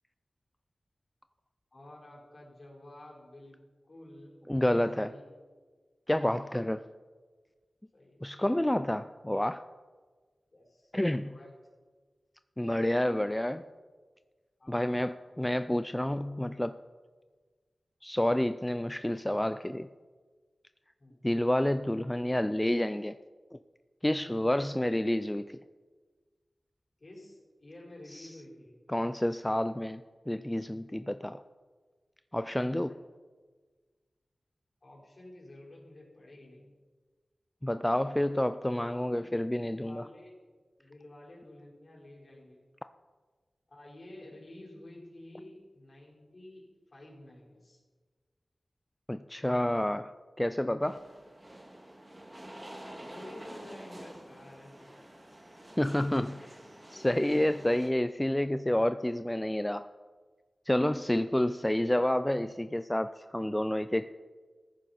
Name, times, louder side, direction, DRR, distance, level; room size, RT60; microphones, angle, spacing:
voice 1, 1.7-4.4 5.0-5.2 6.4-6.6 7.9-8.4 10.5-11.5 14.6-15.4 21.0-21.2 27.0-28.8 32.6-32.8 34.8-36.7 39.1-40.4 40.8-42.6 43.7-47.8 53.0-55.1 55.5-56.5, left 1 dB, 50° left, -4 dB, 4.5 m, -51 dB
voice 2, 4.5-5.1 6.1-6.8 8.2-9.6 10.9-11.4 12.6-13.6 14.7-16.8 18.0-19.9 21.2-23.2 23.5-23.6 24.0-25.6 28.1-28.3 28.9-31.4 32.3-32.9 37.6-40.1 49.1-50.1 50.4-51.0 55.8-56.3 56.9-59.9 60.7-64.1, left 1 dB, 10° left, 11 dB, 0.3 m, -29 dB
sound 1, 50.8-57.9, right 1 dB, 25° right, 1.8 m, -48 dB
14.5 x 9.9 x 4.0 m, 1.4 s
wide cardioid pair, 60°, 0 cm